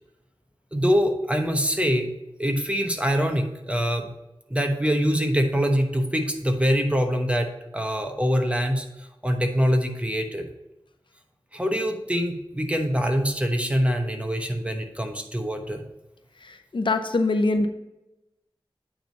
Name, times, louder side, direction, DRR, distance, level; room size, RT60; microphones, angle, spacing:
voice 1, 0.7-2.1 2.4-4.1 4.5-8.8 9.2-10.5 11.5-15.8, equal, 15° right, 4 dB, 1.0 m, -24 dB
voice 2, 16.4-17.7, left 2 dB, 65° left, 7 dB, 0.6 m, -23 dB
8.8 x 3.6 x 5.2 m, 0.95 s
wide cardioid pair, 65°, 9 cm